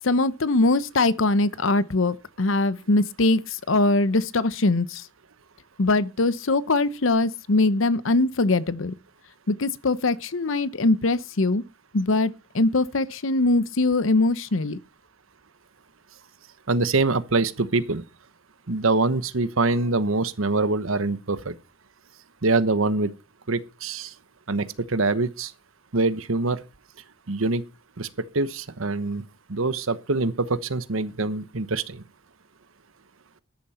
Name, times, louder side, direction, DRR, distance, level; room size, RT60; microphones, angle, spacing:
voice 1, 0.0-5.0 5.8-8.9 9.5-11.6 11.9-14.8, left 2 dB, 65° left, 0.8 m, -22 dB
voice 2, 16.7-18.0 18.7-21.5 22.4-23.1 23.5-24.1 24.5-25.5 25.9-26.6 27.3-27.6 28.0-28.1 28.3-29.2 29.5-32.0, right 3 dB, 80° right, 1.1 m, -24 dB
13.5 x 10.5 x 4.3 m
head